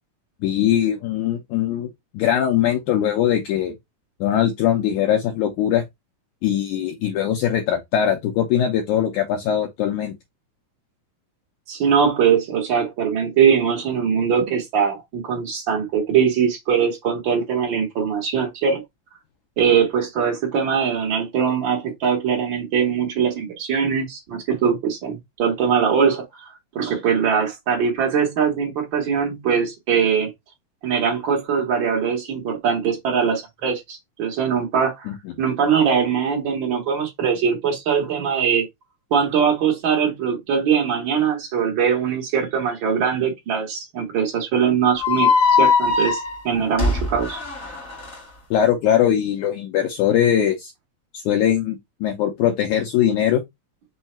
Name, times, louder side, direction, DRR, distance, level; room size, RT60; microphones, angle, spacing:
voice 1, 0.4-1.9 2.1-3.7 4.2-5.8 6.4-10.1 35.1-35.2 48.5-50.7 51.1-53.4, left 10 dB, 80° left, 1.8 m, -21 dB
voice 2, 11.7-18.8 19.6-30.3 30.8-38.6 39.1-45.3 45.6-47.4, right 7 dB, 60° right, 1.2 m, -21 dB
sound 1, 45.0-48.2, left 5 dB, 45° left, 1.1 m, -20 dB
5.5 x 2.3 x 4.2 m
omnidirectional pair, 4.2 m